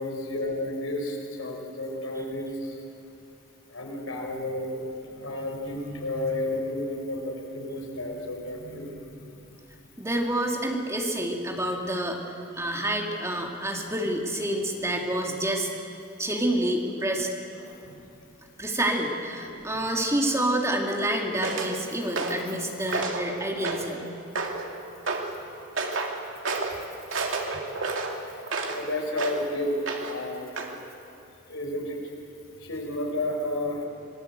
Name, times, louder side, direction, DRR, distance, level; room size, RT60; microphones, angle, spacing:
voice 1, 0.0-2.8 3.7-4.8 5.1-9.4 17.6-18.0 19.5-19.7 28.6-30.6 31.5-32.0 32.6-33.8, left 1 dB, 85° left, 1 dB, 4.7 m, -32 dB
voice 2, 10.0-15.7 16.2-17.3 18.6-24.0, right 1 dB, 15° right, 1 dB, 2.3 m, -28 dB
sound 1, 21.4-21.7 22.2-22.5 22.9-23.3 23.6-24.0 24.4-24.7 25.1-25.3 25.8-26.1 26.4-26.8 27.1-28.8 29.2-29.4 29.9-30.2 30.6-30.7, right 3 dB, 70° right, 2.5 m, -30 dB
26.0 x 19.5 x 8.1 m, 2.7 s
head